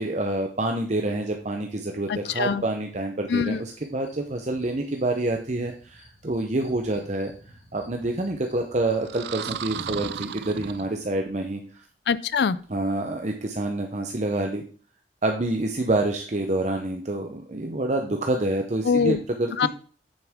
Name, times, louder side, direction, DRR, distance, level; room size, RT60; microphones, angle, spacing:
voice 1, 0.0-7.3 7.7-11.8 12.7-14.6 15.2-19.7, right 2 dB, 40° right, 3 dB, 0.8 m, -27 dB
voice 2, 2.1-2.6 3.3-3.6 12.1-12.6 18.8-19.2 19.6-19.7, left 6 dB, 65° left, 17 dB, 0.4 m, -23 dB
sound 1, 3.5-11.0, right 1 dB, 80° left, 2.1 m, -48 dB
sound 2, 9.0-11.3, right 9 dB, 65° right, 0.4 m, -35 dB
9.0 x 7.1 x 3.6 m, 0.43 s
head